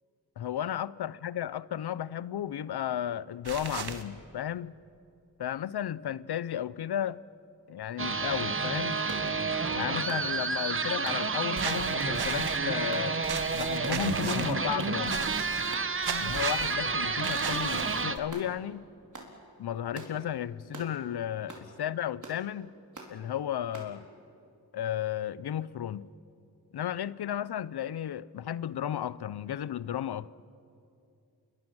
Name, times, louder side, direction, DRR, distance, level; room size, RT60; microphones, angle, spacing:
voice 1, 0.4-4.7 5.4-7.2 7.7-9.0 9.7-13.2 13.5-15.2 16.1-18.8 19.6-22.7 23.1-24.0 24.7-26.1 26.7-30.3, left 10 dB, 75° left, 0.7 m, -34 dB
sound 1, 3.4-4.0 11.6-12.6 13.2-14.5 15.1-15.8 16.0-16.7 17.2-18.2, right 6 dB, 75° right, 1.5 m, -36 dB
sound 2, 8.0-18.2, right 4 dB, 30° right, 1.1 m, -30 dB
sound 3, 9.1-9.3 10.1-10.3 11.1-11.2 12.0-12.2 12.9-13.1 13.8-14.1 14.8-15.0 15.7-15.9 16.6-16.8 17.5-17.7 18.3-18.5 19.1-19.3 19.9-20.2 20.7-20.9 21.5-21.7 22.2-22.4 22.9-23.1 23.7-23.9, right 2 dB, 50° right, 4.2 m, -44 dB
28.0 x 22.5 x 6.2 m
cardioid pair, 70°, 39 cm